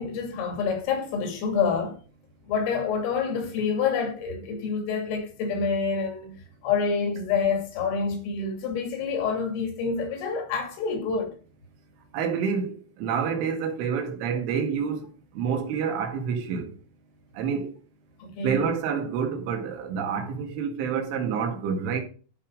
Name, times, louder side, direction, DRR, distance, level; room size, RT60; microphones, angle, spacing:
voice 1, 0.0-2.0 2.5-6.4 6.6-11.3 18.2-18.7, left 5 dB, 75° left, 5.4 m, -27 dB
voice 2, 12.1-15.1 15.4-16.7 17.4-17.7 18.4-22.0, right 6 dB, 70° right, 4.5 m, -28 dB
13.0 x 5.6 x 5.2 m
omnidirectional pair, 5.9 m